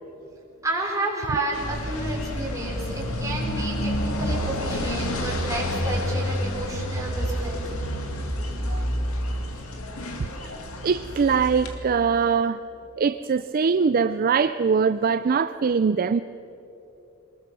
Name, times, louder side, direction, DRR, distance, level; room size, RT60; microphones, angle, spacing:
voice 1, 0.6-7.8, right 1 dB, 15° right, -3 dB, 4.8 m, -31 dB
sound 1, 1.5-11.8, equal, 85° left, 2.3 m, -29 dB
voice 2, 10.8-12.6 13.0-16.2, right 5 dB, 45° right, 12 dB, 0.4 m, -22 dB
24.0 x 20.5 x 6.2 m, 3.0 s
head